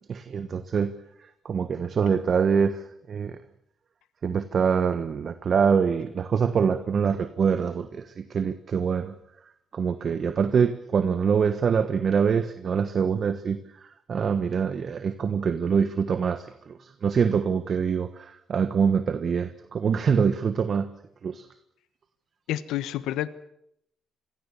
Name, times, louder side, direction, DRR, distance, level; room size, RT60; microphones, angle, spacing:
voice 1, 0.1-0.9 1.2-3.4 4.2-9.1 9.7-20.9 21.2-21.5, right 6 dB, 50° right, 11 dB, 1.3 m, -25 dB
voice 2, 22.5-23.3, left 13 dB, 90° left, 14 dB, 1.2 m, -29 dB
27.0 x 22.5 x 7.0 m, 0.76 s
cardioid pair, 90°, 0 cm